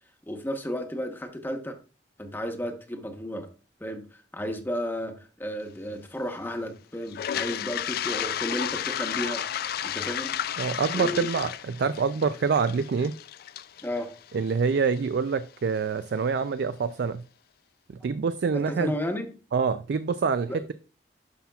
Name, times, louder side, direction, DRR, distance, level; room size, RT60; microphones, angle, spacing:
voice 1, 0.3-1.8 2.2-3.5 3.8-9.4 9.8-10.4 10.9-11.3 13.8-14.1 18.5-19.4 20.5-20.6, equal, 10° left, 1.0 m, -33 dB
Toilet flush, 7.1-15.0, left 10 dB, 60° left, 0.3 m, -32 dB
voice 2, 10.6-13.1 14.3-17.2 17.9-18.9 19.5-20.7, right 5 dB, 65° right, 0.4 m, -26 dB
11.5 x 5.8 x 2.3 m
head